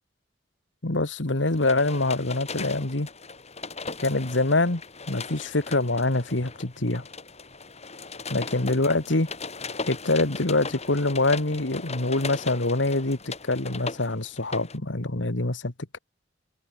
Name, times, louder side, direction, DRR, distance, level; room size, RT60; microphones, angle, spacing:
voice 1, 0.8-3.1 4.0-4.8 5.1-7.0 8.3-9.3 9.9-16.0, left 2 dB, 80° left, 2.0 m, -25 dB
sound 1, 1.4-14.8, left 4 dB, 35° left, 6.8 m, -38 dB
open air
head